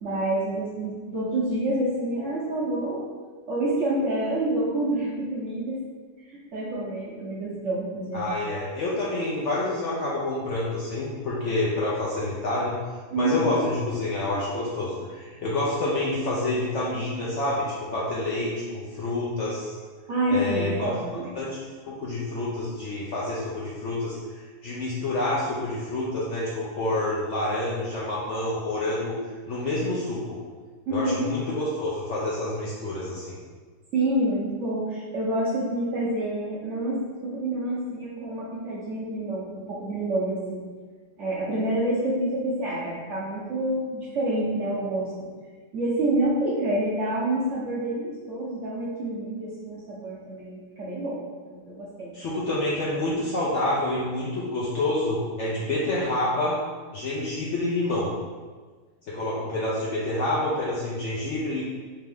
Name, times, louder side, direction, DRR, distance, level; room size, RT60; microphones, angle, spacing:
voice 1, 0.0-3.1 3.5-5.8 6.2-8.3 13.1-13.6 20.1-21.3 30.9-31.3 33.9-40.6 41.2-45.3 45.7-51.2 51.5-52.1, right 1 dB, 60° right, -6 dB, 0.9 m, -28 dB
voice 2, 8.1-12.8 13.2-19.7 20.3-20.9 21.4-21.6 21.8-29.1 29.5-30.4 30.9-33.3 52.1-56.6 56.9-58.1 59.1-61.6, left 2 dB, 65° left, -6 dB, 0.7 m, -28 dB
3.4 x 3.0 x 3.5 m, 1.4 s
omnidirectional pair, 1.8 m